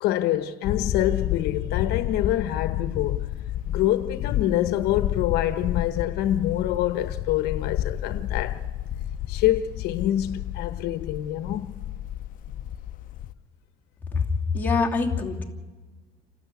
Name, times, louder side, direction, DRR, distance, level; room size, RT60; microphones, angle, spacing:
voice 1, 0.0-3.3 3.7-8.6 9.3-11.8, left 13 dB, 70° left, 1.0 m, -26 dB
sound 1, 0.6-13.3, left 12 dB, 55° left, 0.7 m, -31 dB
voice 2, 14.1-15.4, left 4 dB, 10° left, 2.7 m, -24 dB
29.0 x 12.5 x 8.2 m
cardioid pair, 130°, 17 cm